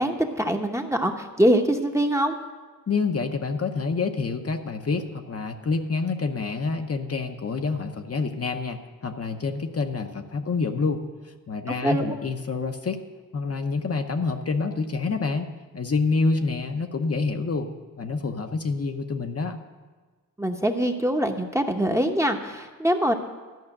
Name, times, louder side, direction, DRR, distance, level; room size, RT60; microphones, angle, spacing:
voice 1, 0.0-2.4 11.8-12.2 20.4-23.1, right 1 dB, 10° right, 4 dB, 0.9 m, -23 dB
voice 2, 2.9-11.1 11.5-13.0 13.3-15.5 15.7-17.7 18.0-19.6, left 4 dB, 45° left, 5 dB, 0.8 m, -27 dB
12.0 x 5.6 x 8.7 m, 1.4 s
wide cardioid pair, 85°, 34 cm